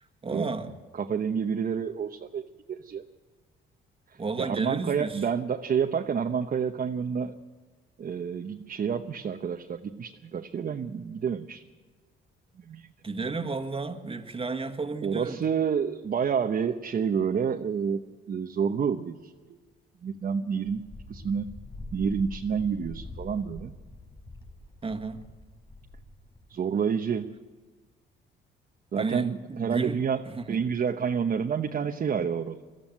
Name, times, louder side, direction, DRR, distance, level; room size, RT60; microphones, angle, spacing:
voice 1, 0.2-0.8 4.2-5.3 13.0-15.4 24.8-25.3 29.0-30.0 30.2-30.6, right 4 dB, 25° right, 1.7 m, -32 dB
voice 2, 1.0-3.0 4.4-7.4 8.0-11.6 12.6-12.9 15.0-19.6 20.0-21.5 21.9-23.7 26.5-27.3 28.9-30.2 30.5-32.6, right 7 dB, 45° right, 1.0 m, -29 dB
Wind, 20.6-26.6, left 1 dB, 25° left, 6.1 m, -44 dB
22.5 x 14.0 x 9.1 m
cardioid pair, 90°, 20 cm